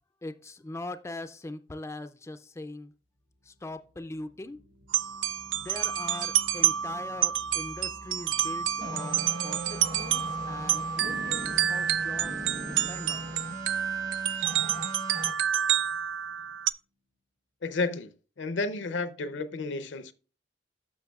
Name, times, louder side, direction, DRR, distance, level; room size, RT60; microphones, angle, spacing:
voice 1, 0.2-2.9 3.4-4.6 5.5-12.3 12.6-13.5, left 2 dB, 15° left, 0.3 m, -41 dB
sound 1, 3.3-16.5, left 1 dB, 65° right, 1.3 m, -52 dB
sound 2, 4.9-16.7, right 10 dB, 85° right, 0.4 m, -29 dB
sound 3, 8.8-15.3, right 1 dB, 50° right, 1.1 m, -39 dB
voice 2, 17.6-18.1 18.4-20.1, left 3 dB, 70° left, 0.6 m, -31 dB
11.5 x 6.7 x 2.3 m
head